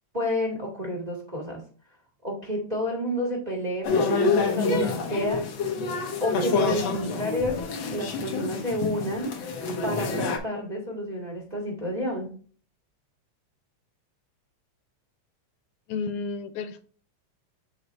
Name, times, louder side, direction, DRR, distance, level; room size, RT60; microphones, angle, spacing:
voice 1, 0.1-1.6 2.2-5.5 6.2-7.6 7.9-9.4 9.8-12.4, left 1 dB, 30° right, -2 dB, 0.7 m, -30 dB
sound 1, 3.8-10.4, left 4 dB, 70° left, 1.2 m, -27 dB
voice 2, 15.9-16.8, left 4 dB, 85° left, 10 dB, 2.1 m, -31 dB
7.8 x 4.0 x 3.2 m, 0.42 s
omnidirectional pair, 3.5 m